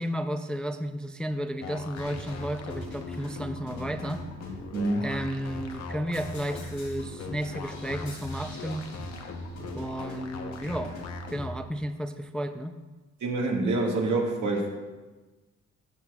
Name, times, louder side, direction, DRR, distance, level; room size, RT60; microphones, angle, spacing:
voice 1, 0.0-4.2 5.0-8.9 9.7-11.0 11.3-12.8, equal, 5° left, 8 dB, 0.3 m, -33 dB
sound 1, 1.6-11.6, left 3 dB, 60° left, 0.8 m, -40 dB
sound 2, 1.9-11.4, left 1 dB, 85° left, 2.5 m, -45 dB
voice 2, 4.7-5.1 13.2-14.7, right 2 dB, 75° right, -1 dB, 1.7 m, -26 dB
14.0 x 6.4 x 2.3 m, 1.2 s
cardioid pair, 90°, 30 cm